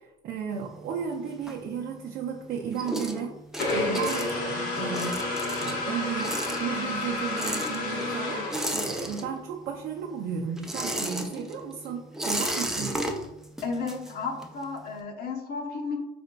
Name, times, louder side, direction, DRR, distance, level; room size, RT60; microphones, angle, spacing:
voice 1, 0.0-3.4 3.7-8.4 8.7-13.0, right 6 dB, 70° right, -1 dB, 0.5 m, -34 dB
sound 1, 0.5-2.1 2.5-9.7 9.9-14.6, right 1 dB, 5° right, 0.4 m, -34 dB
sound 2, 3.6-9.2, left 2 dB, 85° left, 1.0 m, -30 dB
voice 2, 13.6-16.0, left 4 dB, 65° left, 1 dB, 0.8 m, -33 dB
4.2 x 3.8 x 2.2 m, 0.93 s
cardioid pair, 110°, 17 cm